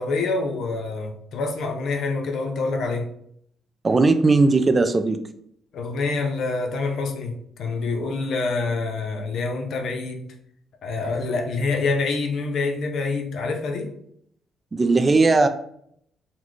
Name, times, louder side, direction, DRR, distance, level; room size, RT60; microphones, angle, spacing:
voice 1, 0.0-3.1 5.7-7.3 7.6-10.3 10.8-13.9, left 3 dB, 70° left, 4 dB, 0.5 m, -26 dB
voice 2, 3.8-5.2 14.7-15.5, right 3 dB, 30° right, 9 dB, 0.3 m, -18 dB
3.8 x 2.2 x 3.1 m, 0.69 s
cardioid pair, 90°, 0 cm